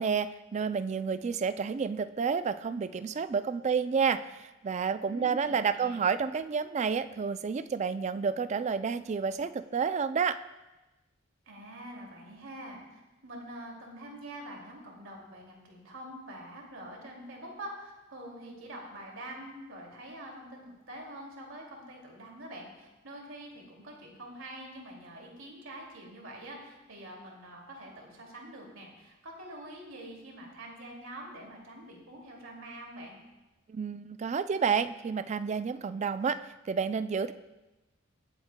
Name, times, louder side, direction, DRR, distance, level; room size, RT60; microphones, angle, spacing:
voice 1, 0.0-10.4 33.7-36.4 36.7-37.3, right 6 dB, 35° right, 12 dB, 0.3 m, -30 dB
voice 2, 5.1-6.0 11.5-33.2, right 1 dB, 70° right, -1 dB, 2.4 m, -45 dB
23.5 x 8.0 x 2.2 m, 1.1 s
head